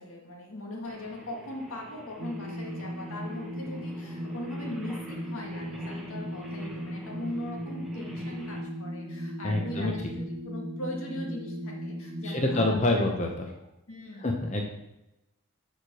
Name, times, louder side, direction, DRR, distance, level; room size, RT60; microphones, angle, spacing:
voice 1, 0.0-13.1 13.9-14.3, left 1 dB, 90° left, 0 dB, 1.9 m, -40 dB
Singing, 0.9-8.6, equal, ahead, 1.2 m, -48 dB
sound 1, 2.2-12.8, equal, 60° right, 1.2 m, -37 dB
voice 2, 9.4-9.9 12.2-13.5 14.2-14.6, left 2 dB, 35° left, 1 dB, 0.8 m, -26 dB
7.3 x 5.0 x 6.2 m, 0.92 s
head